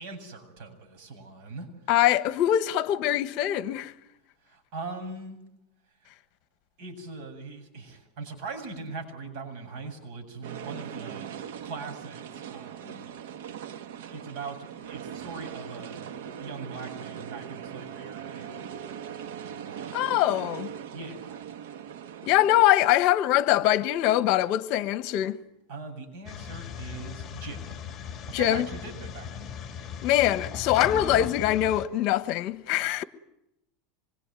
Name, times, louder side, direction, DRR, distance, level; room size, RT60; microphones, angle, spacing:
voice 1, 0.0-2.0 4.5-5.4 6.8-11.3 11.6-13.1 14.1-16.1 16.4-18.7 19.7-20.2 20.9-21.4 25.7-27.8 28.3-29.4 32.7-32.9, right 4 dB, 50° right, 7.8 m, -41 dB
voice 2, 1.9-3.9 19.9-20.7 22.2-25.4 28.3-28.7 30.0-33.0, left 13 dB, 45° left, 1.4 m, -23 dB
sound 1, 10.4-22.6, right 8 dB, 80° right, 1.7 m, -40 dB
sound 2, 26.3-31.9, left 7 dB, 20° left, 3.0 m, -37 dB
26.0 x 23.5 x 9.2 m
supercardioid pair, 160°, 0 cm